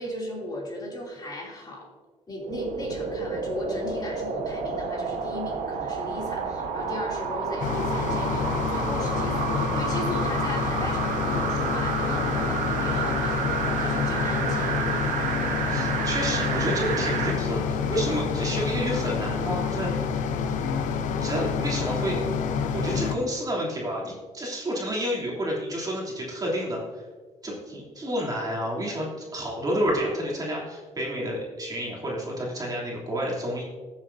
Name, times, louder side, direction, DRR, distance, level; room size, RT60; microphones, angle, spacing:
voice 1, 0.0-1.9 2.3-14.7, left 1 dB, 30° left, -3 dB, 2.9 m, -36 dB
sound 1, 2.4-17.4 17.8-17.9, right 6 dB, 85° right, 1.3 m, -30 dB
sound 2, 7.6-23.2, left 6 dB, 80° left, 0.7 m, -28 dB
voice 2, 15.7-19.9 21.2-22.2 22.7-27.0 27.4-33.6, equal, 30° right, -4 dB, 3.1 m, -30 dB
14.5 x 7.3 x 2.7 m, 1.4 s
cardioid pair, 100°, 13 cm